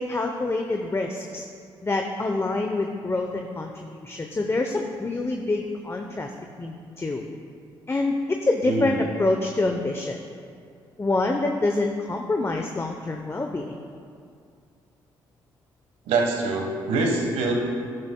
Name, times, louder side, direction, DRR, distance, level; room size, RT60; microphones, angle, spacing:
voice 1, 0.0-1.4 1.8-6.3 6.6-7.2 7.9-10.2 11.0-13.8, left 2 dB, 25° left, 3 dB, 0.8 m, -26 dB
voice 2, 8.6-9.0 16.1-17.5, right 3 dB, 80° right, 1 dB, 1.3 m, -24 dB
12.0 x 10.5 x 2.3 m, 2.3 s
hypercardioid pair, 50°, 11 cm